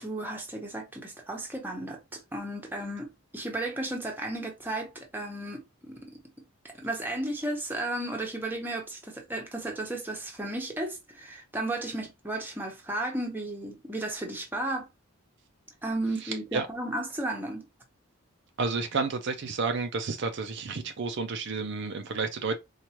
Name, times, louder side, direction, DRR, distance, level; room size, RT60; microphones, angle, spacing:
voice 1, 0.0-6.2 6.6-14.8 15.8-17.6, right 1 dB, 10° right, 0.9 m, -34 dB
voice 2, 16.2-16.7 18.6-22.5, right 4 dB, 55° right, 0.4 m, -31 dB
4.4 x 2.4 x 2.9 m
head